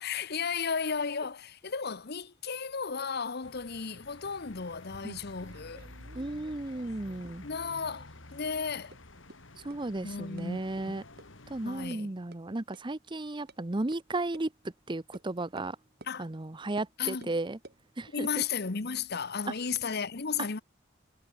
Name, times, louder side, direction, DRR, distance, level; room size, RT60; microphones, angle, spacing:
voice 1, 0.0-5.9 7.4-9.0 10.0-10.6 10.9-11.0 11.6-12.1 16.1-16.3 17.0-17.3 18.1-20.6, left 6 dB, 55° left, 1.0 m, -34 dB
sound 1, 3.4-11.9, left 2 dB, 75° left, 3.3 m, -51 dB
sound 2, 4.7-7.6 7.8-8.6 8.9-9.0 9.3-9.4 9.7-9.8 10.4-10.5 10.8-10.9 11.2-11.3 11.6-12.0 12.3-12.4 12.7-12.8 13.5-13.6 13.9-14.0 14.3-14.5 15.1-15.3 15.6-15.7 16.0-16.1 16.8-16.9 17.2-17.8 18.3-19.9, right 2 dB, 55° right, 4.1 m, -54 dB
voice 2, 6.1-7.4 9.6-11.0 11.5-14.5 14.9-15.8 16.2-17.6 18.0-18.3, right 2 dB, 25° right, 0.8 m, -34 dB
head